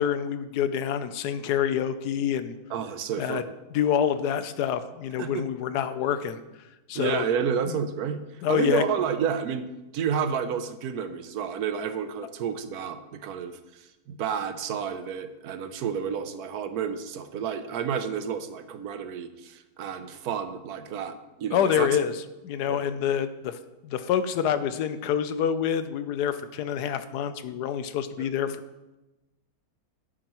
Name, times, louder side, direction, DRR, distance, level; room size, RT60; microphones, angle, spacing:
voice 1, 0.0-2.5 3.2-3.4 3.7-6.4 6.9-7.2 7.7-7.8 8.4-8.8 21.5-23.6 23.8-28.6, left 9 dB, 75° left, 11 dB, 1.1 m, -27 dB
voice 2, 2.7-3.5 5.2-5.5 6.9-8.2 8.5-9.7 9.9-21.9 22.7-22.9 28.2-28.3, right 7 dB, 70° right, 10 dB, 1.1 m, -30 dB
11.0 x 8.8 x 3.0 m, 1.0 s
omnidirectional pair, 1.8 m